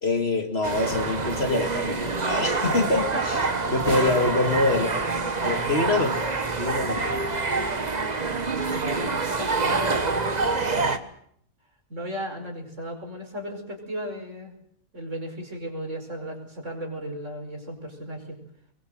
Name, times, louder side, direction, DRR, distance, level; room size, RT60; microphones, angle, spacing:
voice 1, 0.0-3.0 3.7-5.0 5.4-6.3 6.6-7.1, left 2 dB, 45° left, 5 dB, 2.6 m, -25 dB
sound 1, 0.6-11.0, right 3 dB, 30° right, 1.4 m, -26 dB
voice 2, 2.6-4.3 8.5-11.0 11.9-14.5 14.9-18.4, equal, 55° right, 3 dB, 5.4 m, -35 dB
24.0 x 21.5 x 7.8 m, 0.66 s
omnidirectional pair, 1.5 m